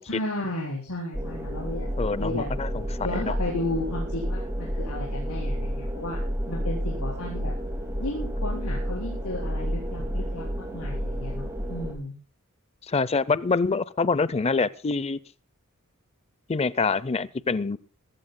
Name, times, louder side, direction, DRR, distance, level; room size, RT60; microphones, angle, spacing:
voice 1, 0.0-1.9 2.2-2.4 3.0-6.2 6.5-7.5 8.0-10.4 10.7-12.1, left 1 dB, 85° left, -3 dB, 4.4 m, -33 dB
sound 1, 1.1-11.9, equal, 10° right, 3.2 m, -30 dB
voice 2, 2.0-3.3 12.9-15.2 16.5-17.8, left 4 dB, 30° left, 18 dB, 0.5 m, -26 dB
23.5 x 15.0 x 2.2 m, 0.37 s
head